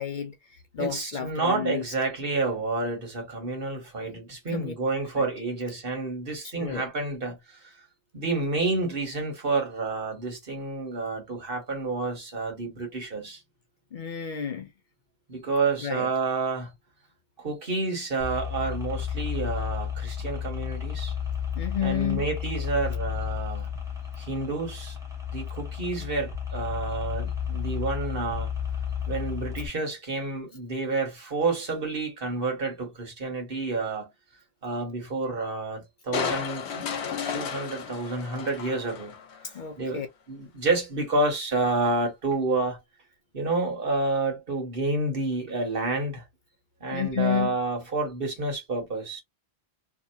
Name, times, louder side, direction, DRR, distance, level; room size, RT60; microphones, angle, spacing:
voice 1, 0.0-1.8 4.1-4.2 4.5-4.7 5.1-5.3 6.6-6.9 13.9-14.7 15.8-16.1 21.6-22.3 39.5-40.1 46.9-47.6, left 9 dB, 60° left, 0.6 m, -31 dB
voice 2, 0.8-7.8 8.1-13.4 15.3-16.7 17.4-21.1 21.8-23.7 24.2-25.0 25.3-28.5 29.1-34.1 34.6-36.6 37.3-39.2 39.8-40.0 40.3-42.8 43.3-46.2 46.8-49.2, right 3 dB, 60° right, 1.6 m, -29 dB
sound 1, 18.2-29.7, left 8 dB, 5° right, 0.9 m, -32 dB
Crushing, 36.1-39.5 39.9-40.0, left 6 dB, 90° left, 1.0 m, -33 dB
2.9 x 2.8 x 2.6 m
omnidirectional pair, 1.1 m